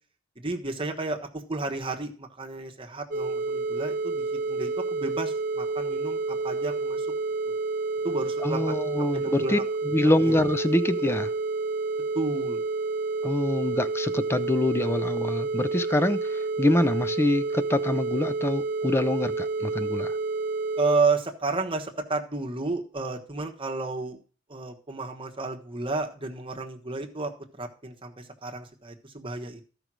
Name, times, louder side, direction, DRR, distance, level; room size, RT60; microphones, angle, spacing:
voice 1, 0.4-7.1 8.0-8.7 9.0-9.6 10.2-10.3 12.1-12.6 20.8-24.2 24.5-27.3 27.6-29.6, right 3 dB, 25° right, 1.3 m, -31 dB
sound 1, 3.1-21.0, right 3 dB, 45° right, 1.0 m, -29 dB
voice 2, 8.4-9.6 9.8-11.3 13.2-20.2, left 1 dB, 10° left, 0.5 m, -25 dB
13.0 x 5.2 x 6.2 m
head